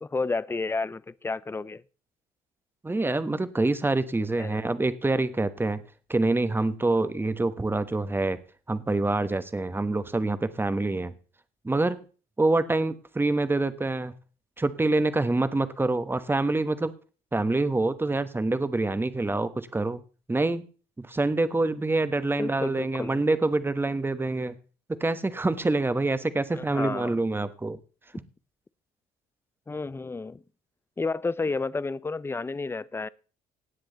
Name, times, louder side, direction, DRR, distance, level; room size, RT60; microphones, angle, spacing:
voice 1, 0.0-1.8 4.4-4.6 22.4-23.2 26.5-27.2 29.7-30.4 31.0-33.1, left 3 dB, 15° left, 0.5 m, -31 dB
voice 2, 2.8-5.8 6.1-8.4 8.7-11.1 11.6-12.0 12.4-14.1 14.6-16.9 17.3-20.0 20.3-20.7 21.0-24.6 24.9-27.8, right 2 dB, 10° right, 1.1 m, -26 dB
18.0 x 7.6 x 4.0 m
supercardioid pair, 90°, 17 cm